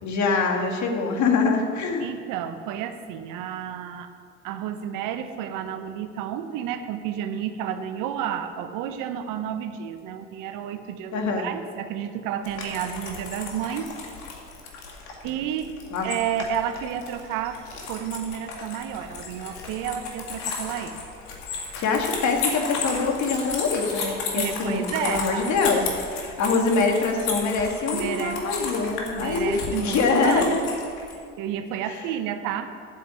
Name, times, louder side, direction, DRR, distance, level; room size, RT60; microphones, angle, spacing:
voice 1, 0.0-2.1 11.1-11.5 15.9-16.1 21.8-25.8 26.1-30.6, left 4 dB, 55° left, 3 dB, 2.0 m, -24 dB
voice 2, 2.0-4.1 4.4-13.9 15.2-15.7 16.0-17.6 17.9-21.0 24.3-25.5 27.9-28.4 29.1-30.6 31.4-32.9, right 9 dB, 65° right, 9 dB, 0.9 m, -31 dB
sound 1, 12.4-31.1, left 5 dB, 75° left, 2.1 m, -34 dB
8.4 x 7.9 x 8.6 m, 2.2 s
hypercardioid pair, 65°, 35 cm